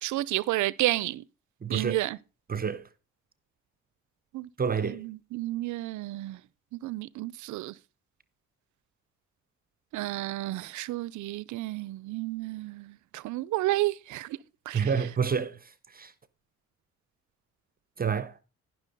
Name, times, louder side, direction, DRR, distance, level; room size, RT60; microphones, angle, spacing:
voice 1, 0.0-1.2 1.7-2.2 4.3-4.5 4.8-6.4 6.7-7.7 9.9-14.4 14.7-14.9, right 17 dB, 75° right, 0.5 m, -31 dB
voice 2, 1.6-2.0 2.5-2.8 4.6-5.0 14.7-15.6 15.9-16.1 18.0-18.3, right 6 dB, 30° right, 0.7 m, -28 dB
10.5 x 6.1 x 5.1 m
cardioid pair, 90°, 30 cm